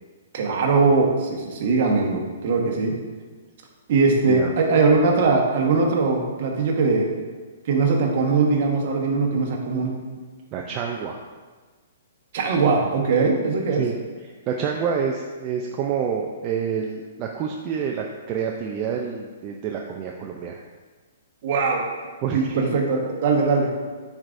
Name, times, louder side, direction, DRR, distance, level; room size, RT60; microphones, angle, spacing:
voice 1, 0.3-3.0 3.9-7.1 7.6-9.9 12.3-13.8 21.4-21.8 22.3-23.7, right 4 dB, 50° right, 0 dB, 1.3 m, -21 dB
voice 2, 10.5-11.2 13.8-13.9 14.5-20.5 22.2-22.6, right 7 dB, 30° right, 0 dB, 0.5 m, -28 dB
10.5 x 4.7 x 2.6 m, 1.4 s
hypercardioid pair, 155°, 0 cm